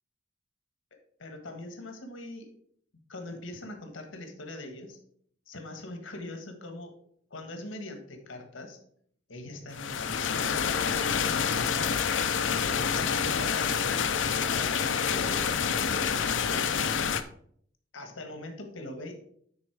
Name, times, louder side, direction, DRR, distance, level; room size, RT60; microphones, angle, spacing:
voice 1, 0.9-2.5 3.1-5.0 5.5-6.9 7.3-8.8 9.3-11.9 12.4-16.9 17.9-19.1, left 1 dB, 90° left, 5 dB, 1.6 m, -42 dB
sound 1, 9.7-17.2, left 7 dB, 70° left, 0.6 m, -27 dB
9.6 x 4.3 x 4.7 m, 0.63 s
head